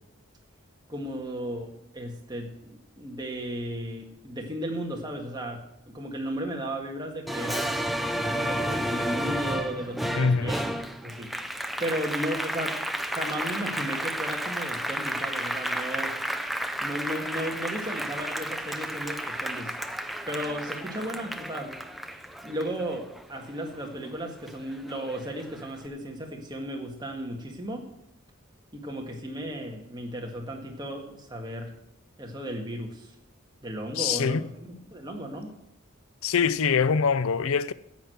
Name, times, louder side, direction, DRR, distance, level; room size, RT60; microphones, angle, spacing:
voice 1, 0.9-1.7 1.9-2.5 3.0-5.6 5.9-7.8 8.2-10.7 11.0-11.3 11.8-12.7 13.1-16.1 16.8-19.8 20.3-21.7 22.1-22.2 22.4-27.8 28.7-31.7 32.2-33.1 33.6-35.5, equal, 20° right, 1.8 m, -34 dB
Applause, 7.3-24.1 24.5-25.6, equal, ahead, 0.5 m, -32 dB
voice 2, 10.1-10.5 34.0-34.5 36.2-37.7, left 6 dB, 85° left, 0.5 m, -24 dB
10.5 x 8.3 x 7.8 m
head